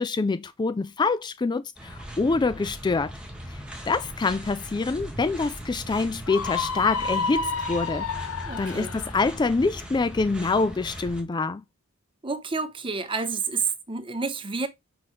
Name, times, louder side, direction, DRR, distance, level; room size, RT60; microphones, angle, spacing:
voice 1, 0.0-3.1 3.5-3.6 3.9-8.1 8.6-11.6, left 3 dB, 20° left, 0.3 m, -26 dB
sound 1, 1.8-11.2, equal, 5° right, 1.8 m, -39 dB
Screaming, 6.3-9.2, left 4 dB, 80° left, 0.8 m, -30 dB
voice 2, 8.5-8.9 12.2-14.7, right 4 dB, 25° right, 0.8 m, -29 dB
5.9 x 5.4 x 3.2 m
head